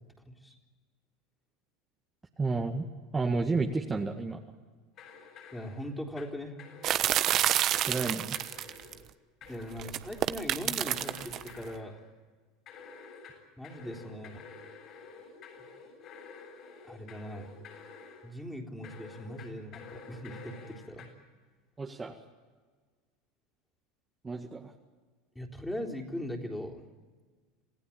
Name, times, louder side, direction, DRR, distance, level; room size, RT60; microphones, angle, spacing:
voice 1, 2.4-2.9 3.1-4.4 7.9-8.4 21.8-22.2 24.2-24.7, right 3 dB, 20° right, 2 dB, 1.9 m, -31 dB
sound 1, 5.0-6.3 6.6-7.3 7.7-9.0 9.4-10.4 10.9-12.0 12.7-18.3 18.8-21.1, left 5 dB, 50° left, 7.6 m, -50 dB
voice 2, 5.5-6.6 9.5-12.0 13.6-14.4 16.9-17.5 18.2-21.1 25.4-26.8, equal, 5° left, 0 dB, 3.8 m, -40 dB
sound 2, 6.8-8.9 9.8-11.5, right 12 dB, 50° right, 1.1 m, -28 dB
27.5 x 15.5 x 8.8 m, 1.5 s
hypercardioid pair, 95°, 0 cm